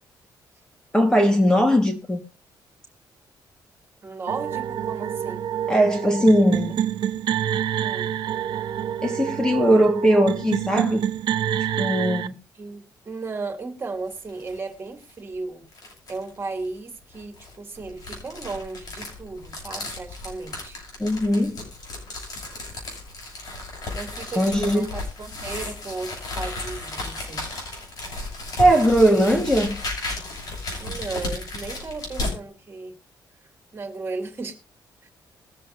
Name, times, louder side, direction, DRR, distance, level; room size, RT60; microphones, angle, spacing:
voice 1, 0.9-2.2 5.7-6.7 9.0-11.0 11.8-12.3 21.0-21.6 24.4-24.9 28.6-29.8, equal, 10° left, 1.6 m, -19 dB
voice 2, 4.0-5.5 7.8-8.1 12.5-15.6 16.1-20.8 23.9-27.4 30.8-32.9 33.7-34.6 35.0-35.1, right 3 dB, 30° right, 2.7 m, -35 dB
sound 1, 4.3-12.3, right 10 dB, 75° right, 0.8 m, -27 dB
sound 2, 14.0-14.6 15.0-15.1 15.7-16.3 17.1-32.4, left 2 dB, 55° left, 6.9 m, -34 dB
21.5 x 7.5 x 2.6 m
cardioid pair, 135°, 8 cm